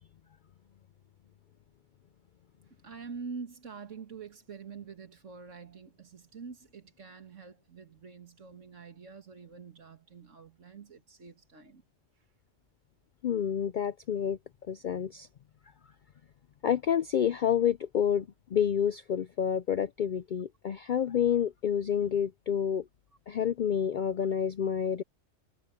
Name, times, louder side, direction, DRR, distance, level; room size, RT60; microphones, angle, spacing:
voice 1, 2.8-11.8, right 5 dB, 70° right, 2.3 m, -46 dB
voice 2, 13.2-14.4 14.7-15.3 16.6-22.8 23.3-25.0, left 8 dB, 65° left, 0.5 m, -29 dB
omnidirectional pair, 1.3 m